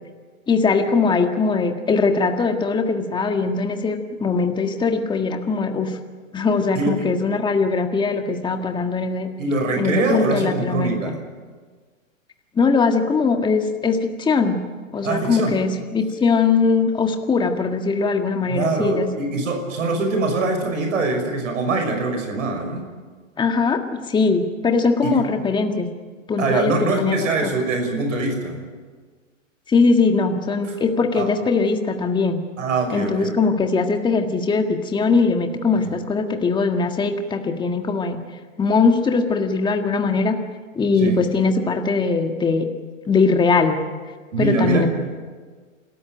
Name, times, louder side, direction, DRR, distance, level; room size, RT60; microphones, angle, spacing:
voice 1, 0.5-6.0 6.3-9.3 9.8-11.1 12.5-14.6 14.9-19.1 23.4-25.9 26.3-27.5 29.7-32.4 32.9-38.2 38.6-40.4 40.7-42.7 43.0-43.8 44.4-44.9, left 4 dB, 10° left, 4 dB, 1.7 m, -21 dB
voice 2, 6.7-7.1 9.4-11.2 15.0-15.6 18.5-22.9 25.0-25.2 26.4-28.6 30.6-30.7 31.2-31.3 32.6-33.3 35.8-35.9 41.0-41.2 44.3-44.9, right 3 dB, 75° right, 4 dB, 6.1 m, -23 dB
29.0 x 14.0 x 9.1 m, 1.5 s
hypercardioid pair, 125°, 39 cm